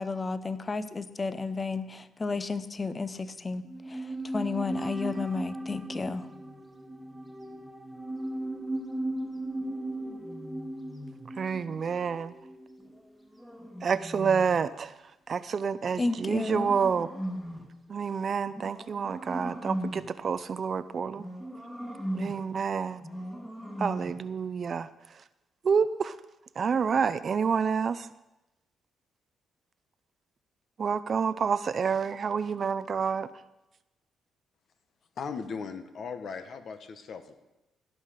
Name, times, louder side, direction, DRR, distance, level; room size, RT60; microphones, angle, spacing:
voice 1, 0.0-6.3 16.0-16.7, left 3 dB, 25° left, 13 dB, 0.8 m, -32 dB
sound 1, 3.6-13.0 13.2-13.3, right 1 dB, 10° right, 1.0 m, -37 dB
sound 2, 5.6-8.0 9.6-11.4 12.8-14.8 15.8-17.8 18.5-20.2 21.1-22.5 23.0-24.3, equal, 5° left, 1.8 m, -40 dB
voice 2, 11.4-12.3 13.8-14.9 15.3-17.1 17.9-21.2 22.1-23.0 23.8-24.9 25.6-26.2 26.6-28.1 30.8-33.3, right 6 dB, 45° right, 15 dB, 0.5 m, -28 dB
voice 3, 35.2-37.4, left 5 dB, 60° left, 9 dB, 1.2 m, -38 dB
16.5 x 5.7 x 6.6 m, 0.96 s
cardioid pair, 90°, 0 cm